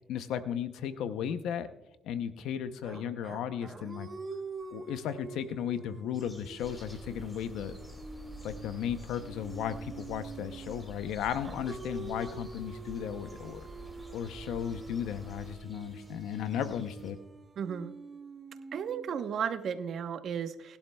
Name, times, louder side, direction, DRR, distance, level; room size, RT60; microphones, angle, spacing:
voice 1, 0.1-1.7 2.0-4.1 4.7-7.8 8.4-13.7 14.1-17.2, left 9 dB, 85° left, 10 dB, 0.7 m, -35 dB
sound 1, 2.8-10.9 11.4-19.5, right 3 dB, 35° right, 1.0 m, -46 dB
sound 2, 6.1-17.1, equal, 20° left, 3.0 m, -57 dB
sound 3, 6.6-15.6, right 1 dB, 15° right, 2.5 m, -49 dB
voice 2, 17.6-17.9 18.7-20.8, right 7 dB, 65° right, 8 dB, 1.0 m, -34 dB
21.0 x 11.5 x 2.3 m, 0.92 s
cardioid pair, 90°, 0 cm